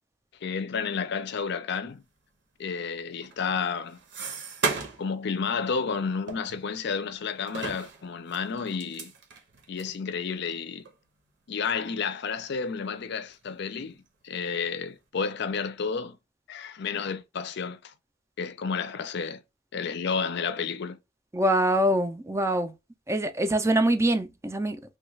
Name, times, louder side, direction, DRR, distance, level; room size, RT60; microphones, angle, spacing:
voice 1, 0.4-2.0 2.6-4.0 5.0-9.1 9.7-10.8 11.5-14.0 14.2-16.2 16.5-17.9 18.4-19.4 19.7-21.0, left 5 dB, 60° left, 0.5 m, -31 dB
sound 1, 3.2-5.1 5.5-5.7 6.3-7.1 7.5-10.0 10.5-10.6 10.8-11.0 11.6-11.9 12.3-13.0 13.4-14.1, right 4 dB, 65° right, 0.9 m, -36 dB
voice 2, 21.3-22.7 23.1-25.0, right 1 dB, 15° right, 0.4 m, -24 dB
3.2 x 2.3 x 3.1 m
head